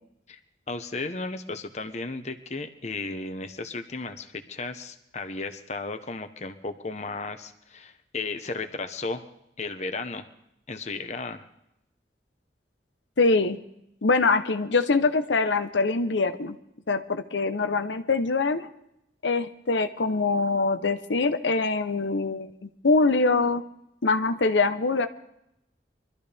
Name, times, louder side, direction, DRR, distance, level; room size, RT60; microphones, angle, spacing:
voice 1, 0.7-9.2 9.6-10.3 10.7-11.5, left 3 dB, 40° left, 7 dB, 1.1 m, -34 dB
voice 2, 13.2-13.6 14.0-16.6 16.9-18.7 19.2-23.6 24.0-25.1, left 3 dB, 85° left, 8 dB, 0.9 m, -24 dB
24.0 x 13.5 x 3.5 m, 0.80 s
head